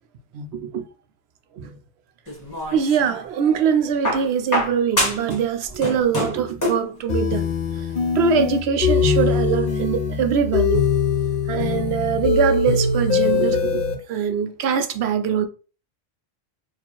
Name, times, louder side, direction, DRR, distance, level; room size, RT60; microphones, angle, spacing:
voice 1, 0.3-0.8 1.6-1.7 2.7-7.5 8.1-10.9 11.5-13.8 14.1-15.5, right 7 dB, 65° right, 0.8 m, -22 dB
sound 1, 2.3-3.3 4.0-5.4 5.7-6.9 8.0-8.1, left 1 dB, 15° left, 1.0 m, -25 dB
sound 2, 7.1-13.9, left 5 dB, 50° left, 0.8 m, -22 dB
4.2 x 2.5 x 3.0 m
omnidirectional pair, 1.3 m